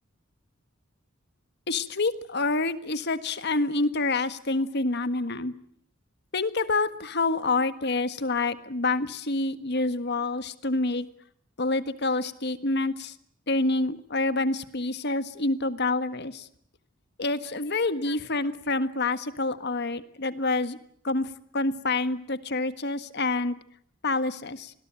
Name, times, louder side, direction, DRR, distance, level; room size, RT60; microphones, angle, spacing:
voice 1, 1.7-5.5 6.3-11.0 11.6-13.1 13.5-16.5 17.2-20.8 21.0-21.3 21.5-23.6 24.0-24.7, left 3 dB, 55° left, 12 dB, 1.6 m, -27 dB
26.5 x 20.5 x 9.0 m, 0.65 s
head